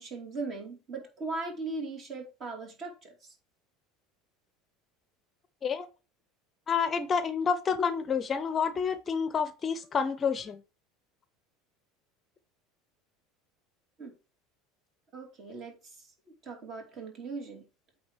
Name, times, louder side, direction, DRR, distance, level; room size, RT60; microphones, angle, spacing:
voice 1, 0.0-3.3 14.0-14.1 15.1-16.0 16.4-17.6, right 3 dB, 45° right, 2.8 m, -39 dB
voice 2, 6.7-10.6, left 6 dB, 30° left, 0.6 m, -29 dB
8.5 x 3.3 x 4.6 m
supercardioid pair, 115°, 0 cm